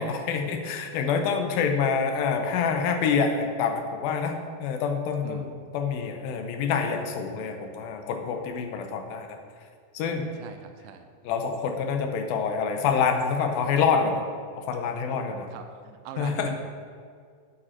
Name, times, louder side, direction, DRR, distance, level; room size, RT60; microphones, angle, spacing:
voice 1, 0.0-9.4 9.9-10.3 11.2-14.2 14.6-15.5 16.2-16.5, left 6 dB, 80° left, 4 dB, 2.6 m, -27 dB
voice 2, 5.2-5.6 10.4-11.1 15.5-16.6, right 7 dB, 80° right, 6 dB, 2.0 m, -41 dB
8.4 x 7.9 x 4.4 m, 2.1 s
omnidirectional pair, 4.3 m